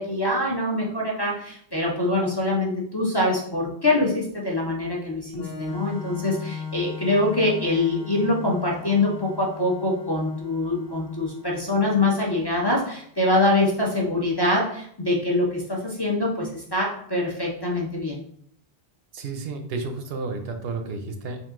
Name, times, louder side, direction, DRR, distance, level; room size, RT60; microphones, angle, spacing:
voice 1, 0.0-18.2, left 2 dB, 30° left, -3 dB, 0.5 m, -24 dB
Organ, 5.3-12.9, left 5 dB, 80° left, 1.0 m, -38 dB
voice 2, 19.1-21.4, right 3 dB, 75° right, 5 dB, 0.8 m, -31 dB
3.7 x 2.6 x 3.6 m, 0.65 s
omnidirectional pair, 1.0 m